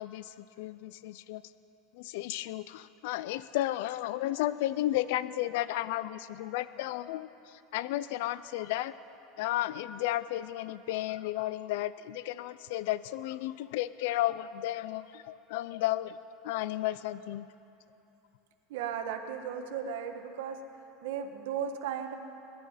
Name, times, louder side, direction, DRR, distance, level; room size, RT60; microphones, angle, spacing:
voice 1, 0.0-1.4 1.9-8.9 9.4-16.2 16.4-17.5, left 15 dB, 70° left, 16 dB, 0.3 m, -33 dB
voice 2, 18.7-20.6 21.0-22.2, right 8 dB, 75° right, 5 dB, 1.3 m, -35 dB
23.5 x 11.0 x 4.9 m, 3.0 s
supercardioid pair, 160°, 0 cm